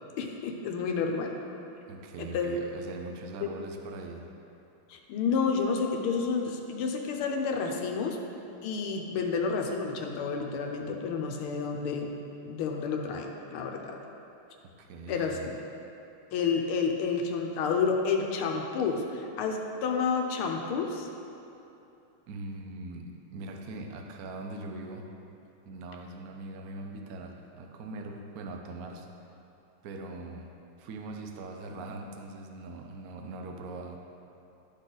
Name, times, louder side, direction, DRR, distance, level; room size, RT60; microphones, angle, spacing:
voice 1, 0.2-1.3 2.2-2.5 3.4-3.5 4.9-8.2 8.6-12.1 12.4-13.9 15.1-15.4 16.3-21.1, left 5 dB, 85° left, 2 dB, 1.6 m, -30 dB
voice 2, 1.9-4.3 14.8-15.5 22.3-25.1 25.7-29.1 29.8-34.0, right 2 dB, 75° right, 2 dB, 0.8 m, -41 dB
11.5 x 4.1 x 3.9 m, 2.8 s
omnidirectional pair, 2.3 m